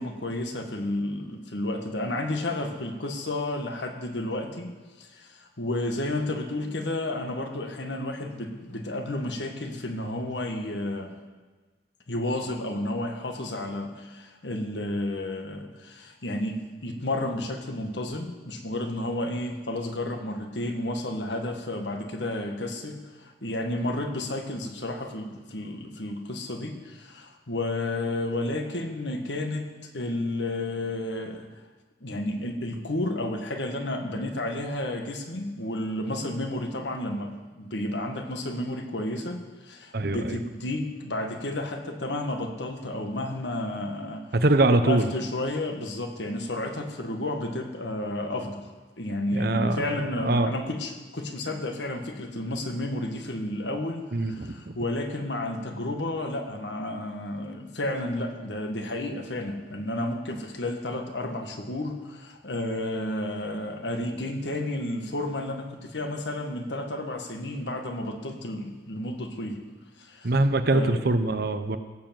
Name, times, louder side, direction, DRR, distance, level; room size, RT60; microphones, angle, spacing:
voice 1, 0.0-11.2 12.1-31.5 32.0-44.3 44.7-48.6 49.0-69.6 70.0-70.3 70.7-71.0, left 1 dB, 70° left, 4 dB, 1.6 m, -31 dB
voice 2, 39.9-40.4 44.3-45.1 49.3-50.5 54.1-54.7 70.2-71.8, right 2 dB, 55° right, 10 dB, 0.8 m, -23 dB
17.0 x 7.1 x 7.6 m, 1.3 s
head